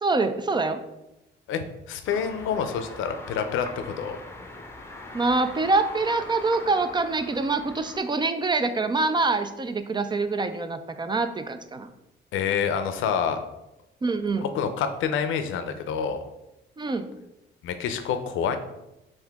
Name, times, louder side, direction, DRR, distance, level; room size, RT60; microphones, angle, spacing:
voice 1, 0.0-0.8 5.1-11.9 14.0-14.5 16.8-17.1, right 3 dB, 25° right, 10 dB, 0.4 m, -25 dB
voice 2, 1.5-4.2 12.3-13.4 14.4-16.2 17.6-18.6, left 7 dB, 85° left, 9 dB, 0.5 m, -27 dB
sound 1, 2.1-8.0, left 2 dB, 10° left, 0.7 m, -41 dB
5.6 x 2.6 x 3.5 m, 0.91 s
cardioid pair, 90°, 20 cm